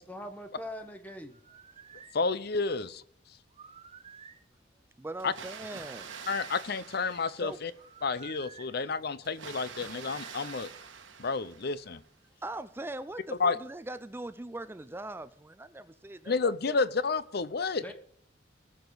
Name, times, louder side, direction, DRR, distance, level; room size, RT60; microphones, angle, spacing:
voice 1, 0.1-1.4 17.8-17.9, left 1 dB, 10° left, 1.1 m, -42 dB
sound 1, 1.3-2.2 3.5-4.4 5.7-6.6 7.8-8.7 10.0-10.9, right 6 dB, 30° right, 0.8 m, -51 dB
voice 2, 2.1-3.0 5.2-5.3 6.3-7.7 8.0-10.7 11.2-12.0 13.4-13.6 16.3-17.9, left 4 dB, 55° left, 0.7 m, -30 dB
voice 3, 5.0-6.1 7.4-7.6 12.4-16.8, right 2 dB, 10° right, 0.4 m, -41 dB
Water, 5.2-8.0 9.2-12.1, right 6 dB, 80° right, 1.4 m, -46 dB
19.0 x 7.0 x 4.0 m
head